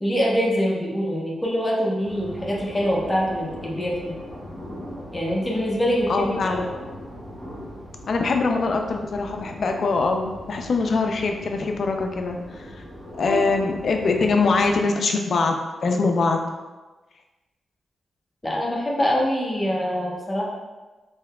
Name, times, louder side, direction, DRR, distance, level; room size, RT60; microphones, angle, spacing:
voice 1, 0.0-4.1 5.1-6.6 13.2-13.4 18.4-20.4, equal, 20° left, -4 dB, 0.8 m, -24 dB
sound 1, 2.0-14.8, equal, 10° right, 1.2 m, -40 dB
voice 2, 6.1-6.7 8.1-12.7 13.2-16.4, left 3 dB, 65° left, 4 dB, 0.4 m, -23 dB
3.4 x 2.7 x 2.2 m, 1.2 s
cardioid pair, 60°, 0 cm